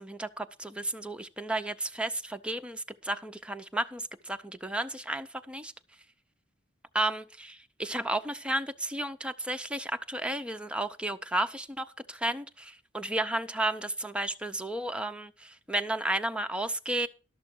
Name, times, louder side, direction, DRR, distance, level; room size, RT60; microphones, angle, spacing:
voice 1, 0.0-5.7 6.9-7.5 7.8-17.1, right 1 dB, 5° right, 0.6 m, -33 dB
12.5 x 6.4 x 6.2 m
head